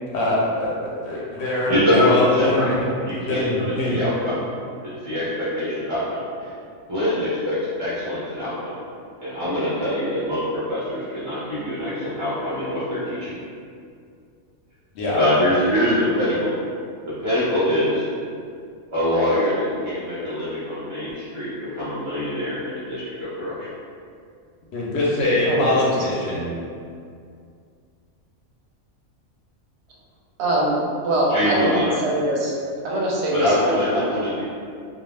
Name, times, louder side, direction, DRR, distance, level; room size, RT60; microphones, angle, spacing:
voice 1, 0.1-2.7 3.1-4.0 14.9-15.2 24.7-26.6, left 2 dB, 65° left, -6 dB, 0.7 m, -23 dB
voice 2, 1.7-2.8 3.0-4.4 4.8-6.5 6.9-8.8 9.2-13.3 15.1-16.5 17.1-18.1 18.9-23.7 31.3-31.9 33.3-34.5, left 1 dB, 45° right, -10 dB, 0.4 m, -24 dB
voice 3, 25.4-25.8 30.4-30.8 31.0-32.5 32.8-34.1, right 1 dB, 65° right, -4 dB, 0.8 m, -23 dB
2.3 x 2.2 x 3.2 m, 2.3 s
omnidirectional pair, 1.4 m